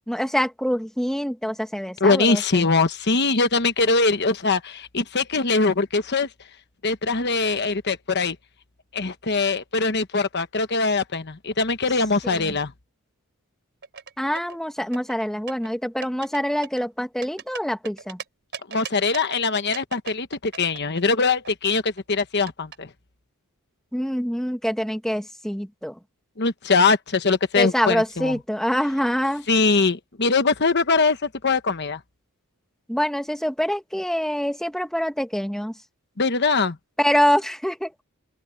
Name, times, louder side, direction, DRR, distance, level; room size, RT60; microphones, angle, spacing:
voice 1, 0.1-2.7 12.2-12.5 14.2-18.2 23.9-26.0 27.5-29.5 32.9-35.8 37.0-37.9, equal, ahead, 1.3 m, -25 dB
voice 2, 2.0-6.3 6.8-8.4 8.9-12.7 18.7-22.9 26.4-28.4 29.5-32.0 36.2-36.8, left 4 dB, 50° left, 1.1 m, -22 dB
sound 1, 13.8-14.6 14.9-15.7 16.0-16.4 16.6-18.2 18.5-19.4 19.7-21.5 21.7-22.8, right 6 dB, 50° right, 4.2 m, -37 dB
open air
head